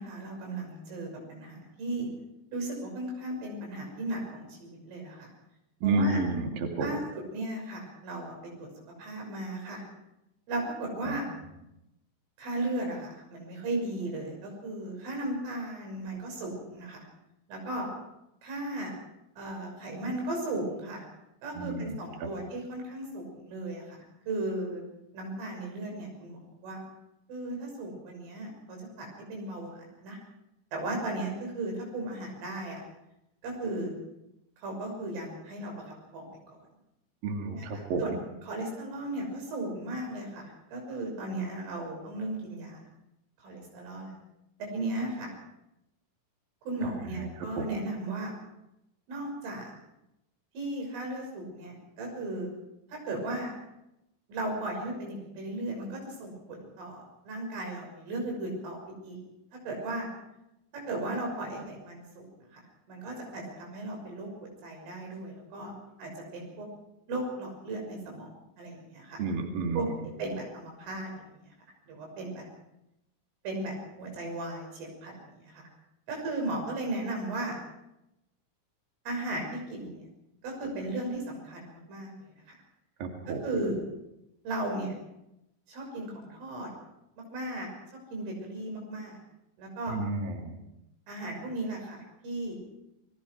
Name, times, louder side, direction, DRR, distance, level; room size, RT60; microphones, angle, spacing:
voice 1, 0.0-2.1 2.5-5.3 5.8-6.2 6.8-8.7 9.0-9.8 10.5-11.3 12.4-17.0 17.5-17.9 18.4-18.9 19.4-21.0 21.4-24.0 24.3-24.8 25.1-26.8 27.3-30.2 30.7-32.8 33.4-33.9 34.6-35.7 36.1-36.6 37.5-38.2 38.5-40.4 40.7-42.9 43.4-44.2 44.6-45.3 46.7-48.3 49.1-49.7 50.6-52.5 52.9-53.5 54.3-59.2 59.7-60.1 60.7-62.3 62.5-62.6 62.9-65.7 66.0-66.7 67.1-69.2 69.7-69.9 70.2-71.5 71.9-72.4 73.5-75.6 76.1-77.6 79.1-80.0 80.4-82.1 83.3-83.8 84.5-84.9 85.7-86.7 87.3-87.7 88.1-89.2 89.6-90.0 91.1-92.6, right 2 dB, 85° right, 1 dB, 8.8 m, -36 dB
voice 2, 5.8-6.9 11.0-11.2 21.5-21.9 22.2-22.3 37.2-38.2 46.8-47.3 47.6-47.7 69.2-69.9 83.0-83.4 89.9-90.6, right 3 dB, 50° right, 2 dB, 3.7 m, -31 dB
29.0 x 20.5 x 4.7 m, 0.88 s
omnidirectional pair, 5.7 m